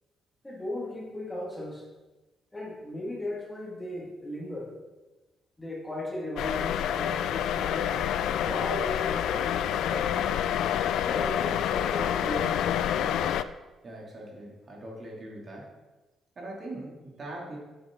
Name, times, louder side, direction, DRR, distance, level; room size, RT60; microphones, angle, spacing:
voice 1, 0.4-1.9 2.5-4.7 5.6-8.0 8.2-10.3 10.9-12.8, left 1 dB, 15° left, -3 dB, 2.0 m, -36 dB
sound 1, 6.4-13.4, left 10 dB, 80° left, 0.3 m, -28 dB
voice 2, 13.8-15.7 16.4-17.6, right 1 dB, 40° right, -2 dB, 2.5 m, -41 dB
8.0 x 7.7 x 3.7 m, 1.2 s
cardioid pair, 90°, 0 cm